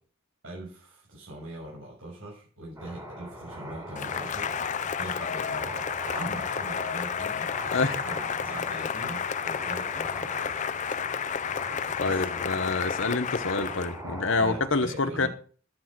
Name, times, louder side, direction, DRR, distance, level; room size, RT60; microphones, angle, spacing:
voice 1, 0.4-4.6 5.0-7.6 7.8-10.5 10.8-10.9 12.0-12.3 14.4-15.3, right 1 dB, 75° right, 6.4 m, -42 dB
sound 1, 2.8-14.7, equal, 15° right, 4.1 m, -41 dB
Cheering / Applause, 4.0-14.0, left 7 dB, 40° left, 0.5 m, -31 dB
voice 2, 7.7-8.0 12.0-15.3, left 3 dB, 70° left, 1.3 m, -27 dB
12.0 x 9.4 x 6.2 m
head